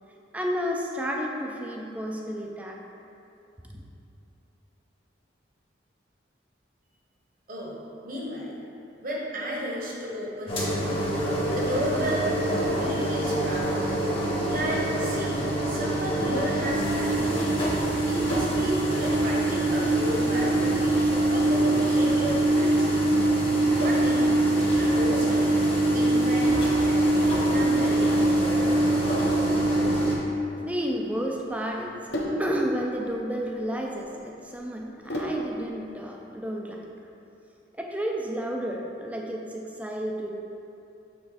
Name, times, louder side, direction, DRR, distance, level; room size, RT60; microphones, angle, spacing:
voice 1, 0.3-2.8 3.7-3.8 30.6-36.8 37.8-40.3, equal, 5° right, 0 dB, 0.4 m, -31 dB
voice 2, 8.0-8.6 9.0-11.0 11.5-13.9 14.2-17.4 18.0-21.0 21.3-23.1 23.7-24.3 24.6-25.6 25.9-27.1 27.5-28.2, equal, 45° right, -4 dB, 1.1 m, -33 dB
sound 1, 10.5-30.1, right 1 dB, 30° left, 1.0 m, -24 dB
Sink (filling or washing), 26.5-35.7, equal, 60° left, 0.9 m, -36 dB
6.2 x 3.6 x 4.9 m, 2.8 s
head